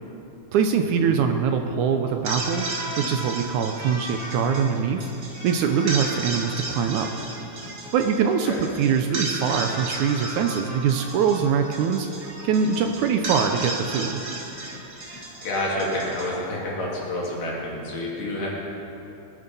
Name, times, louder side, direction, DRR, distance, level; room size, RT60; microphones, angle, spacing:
voice 1, 0.5-2.7 3.0-5.1 5.4-7.1 7.9-14.2, right 6 dB, 75° right, 5 dB, 1.9 m, -23 dB
sound 1, 2.1-17.3, right 2 dB, 50° right, 0.9 m, -34 dB
voice 2, 15.4-18.5, left 1 dB, 65° left, -5 dB, 4.3 m, -28 dB
21.0 x 9.2 x 5.4 m, 2.8 s
omnidirectional pair, 4.0 m